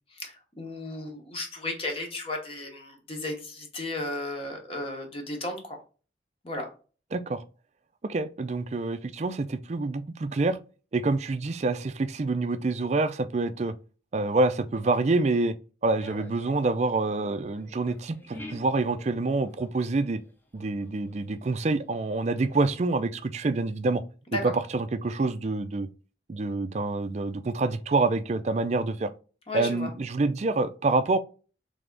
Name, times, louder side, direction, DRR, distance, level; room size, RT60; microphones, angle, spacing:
voice 1, 0.1-5.8 6.4-6.7 24.3-24.5 29.5-29.9, left 2 dB, 30° left, 1.0 m, -34 dB
voice 2, 7.1-7.4 8.0-10.6 10.9-13.7 14.1-15.5 15.8-20.2 20.5-24.0 24.4-25.9 26.3-29.1 29.5-31.2, right 3 dB, 40° right, 0.4 m, -27 dB
sound 1, 16.0-20.0 20.2-21.9 22.3-23.2, left 1 dB, 10° left, 0.6 m, -47 dB
3.4 x 3.4 x 3.8 m
head